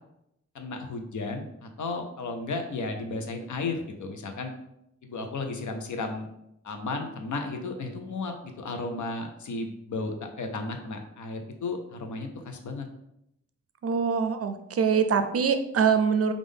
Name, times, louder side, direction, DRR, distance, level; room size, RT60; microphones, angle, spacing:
voice 1, 0.5-4.5 5.0-6.3 6.6-12.9, left 3 dB, 90° left, 5 dB, 0.7 m, -34 dB
voice 2, 13.8-16.3, right 6 dB, 55° right, 8 dB, 0.4 m, -24 dB
5.2 x 2.5 x 3.7 m, 0.82 s
wide cardioid pair, 150°, 29 cm